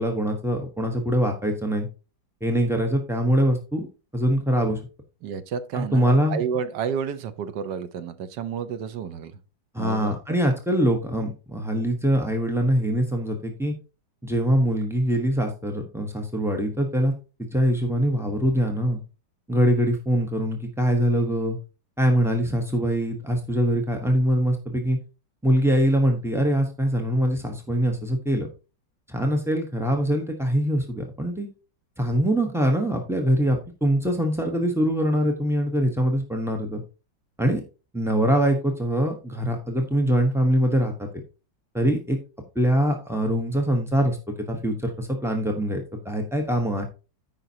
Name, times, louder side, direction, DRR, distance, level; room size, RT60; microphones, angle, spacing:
voice 1, 0.0-1.9 2.4-3.9 4.1-4.8 5.7-6.4 9.7-13.7 14.2-17.1 17.5-19.0 19.5-21.6 22.0-25.0 25.4-28.5 29.1-31.5 32.0-36.8 37.4-37.6 37.9-41.1 41.7-42.2 42.5-46.8, equal, 5° right, 2 dB, 0.3 m, -23 dB
voice 2, 5.2-9.4 9.8-10.1, right 7 dB, 70° right, 11 dB, 1.3 m, -30 dB
13.5 x 5.2 x 2.8 m, 0.33 s
omnidirectional pair, 2.1 m